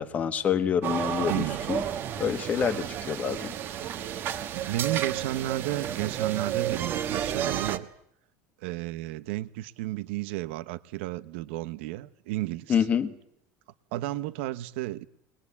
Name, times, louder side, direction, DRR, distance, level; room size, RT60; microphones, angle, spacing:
voice 1, 0.0-1.8 2.2-3.5 12.7-13.1, left 7 dB, 25° left, 11 dB, 1.4 m, -27 dB
sound 1, 0.8-7.8, right 10 dB, 35° right, 1.4 m, -31 dB
voice 2, 1.3-1.6 4.5-7.9 8.6-12.8 13.9-15.0, right 16 dB, 85° right, 13 dB, 1.0 m, -32 dB
22.0 x 21.0 x 8.5 m, 0.71 s
cardioid pair, 170°, 6 cm